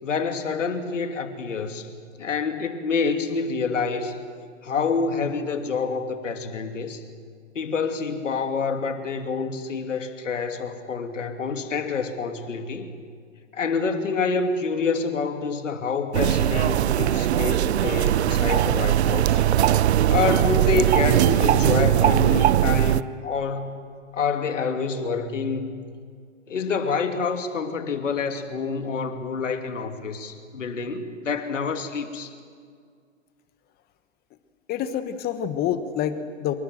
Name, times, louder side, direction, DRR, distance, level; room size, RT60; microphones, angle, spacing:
voice 1, 0.0-1.9 2.2-4.2 4.6-7.0 7.5-12.9 13.5-19.5 20.1-23.8 24.1-25.8 26.5-32.3, left 5 dB, 75° left, 7 dB, 2.9 m, -27 dB
sound 1, 16.1-23.0, right 12 dB, 60° right, 0.7 m, -20 dB
voice 2, 34.7-36.6, left 9 dB, 25° left, 11 dB, 1.3 m, -27 dB
26.5 x 23.0 x 7.8 m, 2.1 s
hypercardioid pair, 120°, 38 cm